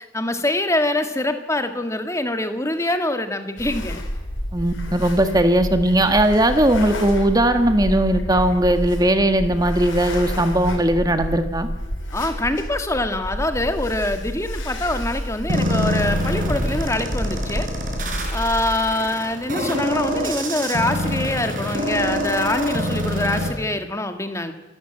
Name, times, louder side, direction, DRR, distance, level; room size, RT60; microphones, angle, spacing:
voice 1, 0.0-4.0 12.1-17.7 18.3-24.5, left 1 dB, 15° left, 7 dB, 1.7 m, -24 dB
sound 1, 3.6-18.8, equal, 75° left, 5.0 m, -29 dB
voice 2, 4.5-11.7, right 1 dB, 20° right, 8 dB, 1.4 m, -18 dB
sound 2, 15.5-23.5, equal, 40° right, 4.7 m, -25 dB
27.0 x 13.5 x 8.9 m, 1.1 s
head